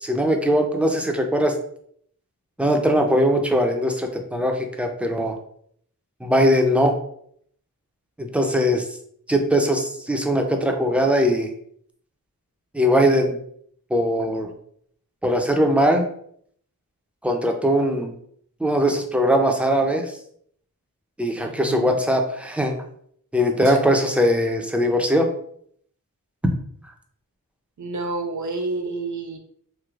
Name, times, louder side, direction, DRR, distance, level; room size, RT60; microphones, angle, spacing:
voice 1, 0.0-1.5 2.6-5.4 6.2-7.0 8.2-8.9 9.3-11.5 12.7-13.4 13.9-14.5 15.2-16.1 17.2-18.1 18.6-20.2 21.2-22.8 23.3-25.3, equal, 5° right, 3 dB, 0.4 m, -20 dB
voice 2, 21.4-22.0 23.6-23.8 27.8-29.4, right 3 dB, 55° right, 4 dB, 0.6 m, -30 dB
3.1 x 2.9 x 2.3 m, 0.65 s
wide cardioid pair, 80°, 36 cm